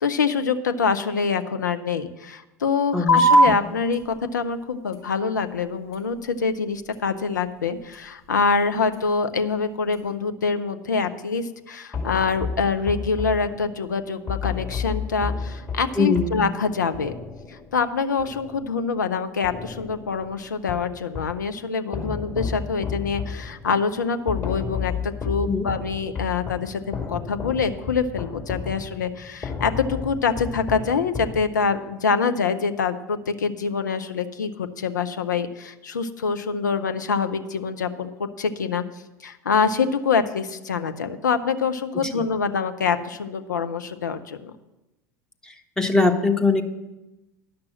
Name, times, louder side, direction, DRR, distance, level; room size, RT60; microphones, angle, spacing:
voice 1, 0.0-17.1 17.5-38.8 39.2-44.5, left 5 dB, 75° left, 9 dB, 0.7 m, -25 dB
voice 2, 2.9-3.5 16.0-16.4 25.4-25.7 42.1-42.2 45.5-46.6, left 3 dB, 5° left, 4 dB, 1.0 m, -22 dB
sound 1, 3.1-10.1, right 1 dB, 45° left, 4.0 m, -26 dB
sound 2, 11.9-19.1 19.4-21.5 21.9-31.8, left 5 dB, 25° left, 2.2 m, -33 dB
11.0 x 6.1 x 7.6 m, 1.0 s
figure-of-eight pair, 75°, 10 cm